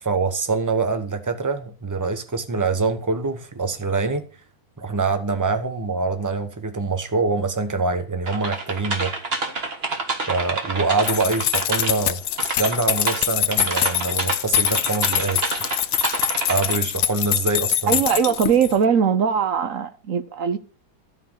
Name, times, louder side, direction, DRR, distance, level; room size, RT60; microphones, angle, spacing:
voice 1, 0.0-4.3 4.8-9.1 10.3-15.8 16.5-18.0, right 3 dB, 20° right, 0.5 m, -25 dB
sound 1, 8.3-12.1 12.4-16.8, right 3 dB, 35° right, 1.5 m, -28 dB
sound 2, 11.0-18.8, left 12 dB, 75° left, 1.4 m, -24 dB
voice 2, 17.9-20.6, right 7 dB, 60° right, 0.9 m, -20 dB
13.0 x 4.4 x 7.9 m
omnidirectional pair, 2.1 m